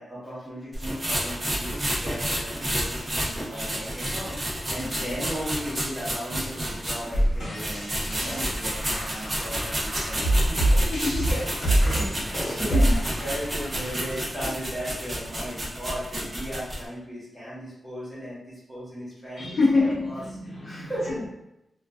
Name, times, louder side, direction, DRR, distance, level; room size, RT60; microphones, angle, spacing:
voice 1, 0.0-4.3 4.7-10.9 11.3-20.2 20.8-21.3, equal, ahead, -10 dB, 0.9 m, -36 dB
sound 1, 0.7-7.2 7.6-16.8, right 1 dB, 25° right, 0.5 m, -30 dB
sound 2, 7.1-14.1, right 1 dB, 85° left, 0.7 m, -25 dB
voice 2, 10.9-11.2 12.7-13.0 19.4-20.9, left 3 dB, 45° left, -5 dB, 0.7 m, -26 dB
2.4 x 2.2 x 2.3 m, 0.88 s
wide cardioid pair, 170°, 0 cm